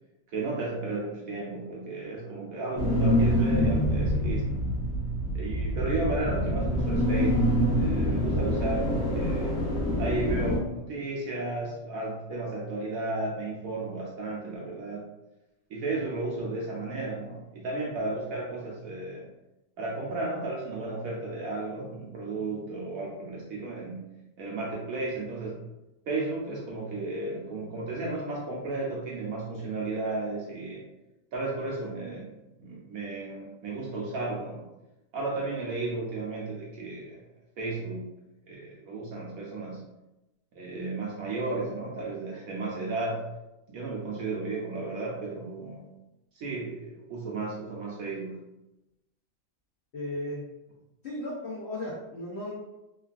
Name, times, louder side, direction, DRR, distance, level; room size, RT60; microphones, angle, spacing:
voice 1, 0.3-4.6 5.3-7.5 7.7-9.5 10.0-15.0 15.7-19.3 19.8-24.0 24.4-25.6 26.1-30.8 31.3-34.6 35.1-37.2 37.6-38.1 38.4-39.8 40.5-43.2 43.7-45.9 46.3-48.4, right 2 dB, 70° right, -4 dB, 0.9 m, -34 dB
sound 1, 2.8-10.6, equal, 50° left, 0.9 m, -26 dB
voice 2, 49.9-50.4 51.0-52.5, left 1 dB, 70° left, -6 dB, 0.6 m, -35 dB
3.2 x 2.3 x 2.4 m, 0.95 s
omnidirectional pair, 1.9 m